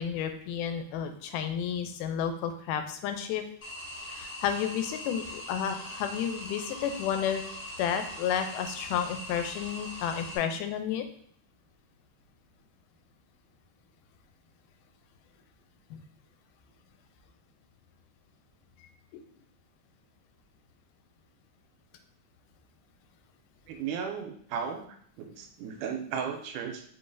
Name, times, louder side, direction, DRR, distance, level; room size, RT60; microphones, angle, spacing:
voice 1, 0.0-3.4 4.1-7.4 7.8-11.1 15.9-16.0 19.1-19.2, left 8 dB, 85° left, 7 dB, 2.1 m, -31 dB
sound 1, 3.6-10.4, left 1 dB, 50° left, 2.8 m, -41 dB
voice 2, 23.7-26.8, right 7 dB, 85° right, 5 dB, 2.1 m, -35 dB
4.7 x 3.8 x 2.5 m, 0.63 s
omnidirectional pair, 3.7 m